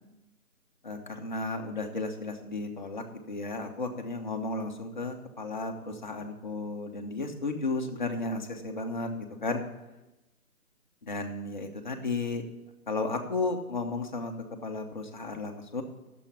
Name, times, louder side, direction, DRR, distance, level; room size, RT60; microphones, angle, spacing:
voice 1, 0.8-9.6 11.0-12.4 12.9-14.3 14.6-15.8, left 3 dB, 30° left, 3 dB, 1.0 m, -34 dB
8.7 x 7.3 x 8.3 m, 1.0 s
figure-of-eight pair, 165°, 44 cm